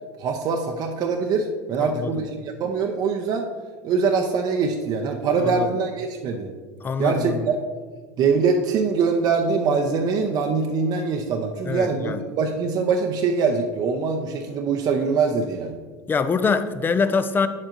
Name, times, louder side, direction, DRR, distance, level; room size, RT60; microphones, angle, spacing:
voice 1, 0.2-2.3 2.6-3.5 3.8-6.5 7.0-7.6 8.2-15.7, right 5 dB, 45° right, 3 dB, 0.6 m, -23 dB
voice 2, 1.8-2.1 5.4-5.7 6.8-7.5 11.7-12.2 16.1-17.5, left 5 dB, 20° left, 11 dB, 0.5 m, -24 dB
8.6 x 7.4 x 2.5 m, 1.5 s
supercardioid pair, 100°, 9 cm